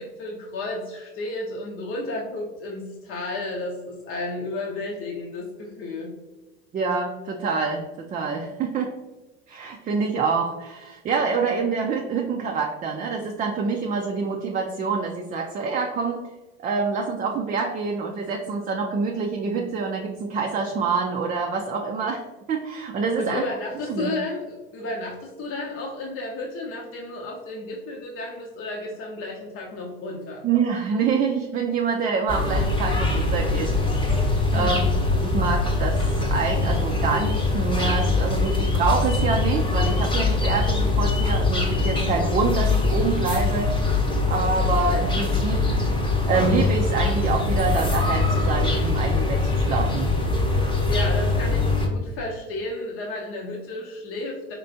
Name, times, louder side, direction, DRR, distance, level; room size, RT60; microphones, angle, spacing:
voice 1, 0.0-6.1 23.2-30.4 34.5-34.8 50.9-54.5, left 2 dB, 45° left, -1 dB, 0.8 m, -32 dB
voice 2, 6.7-9.0 9.5-16.3 16.6-23.4 23.9-24.1 30.4-33.7 34.5-43.7 44.3-45.6 46.3-50.1, right 5 dB, 25° right, 1 dB, 0.4 m, -26 dB
sound 1, 32.3-51.9, left 3 dB, 15° left, 0.9 m, -23 dB
4.5 x 3.1 x 2.6 m, 1.1 s
hypercardioid pair, 90°, 31 cm